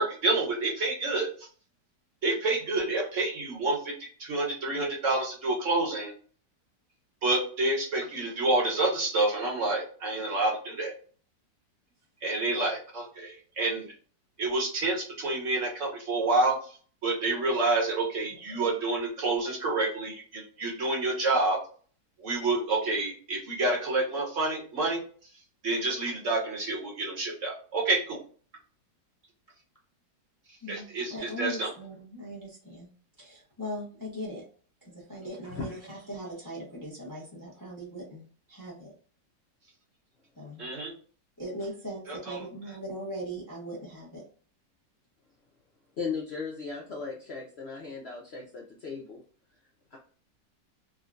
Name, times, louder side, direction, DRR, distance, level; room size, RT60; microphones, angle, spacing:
voice 1, 0.0-1.5 2.2-3.9 4.2-6.1 7.2-10.9 12.2-13.9 14.4-16.6 17.0-21.6 22.2-25.0 25.6-28.2 30.7-31.7 40.6-40.9 42.1-42.4, right 2 dB, 55° right, -1 dB, 1.0 m, -28 dB
voice 2, 30.6-32.9 33.2-34.4 34.8-38.2 38.5-38.9 40.4-40.7 41.4-44.2, equal, 20° left, -5 dB, 0.5 m, -39 dB
voice 3, 35.4-35.9 46.0-49.2 49.9-50.0, left 5 dB, 85° left, -1 dB, 0.5 m, -37 dB
3.6 x 2.2 x 2.4 m, 0.43 s
omnidirectional pair, 1.9 m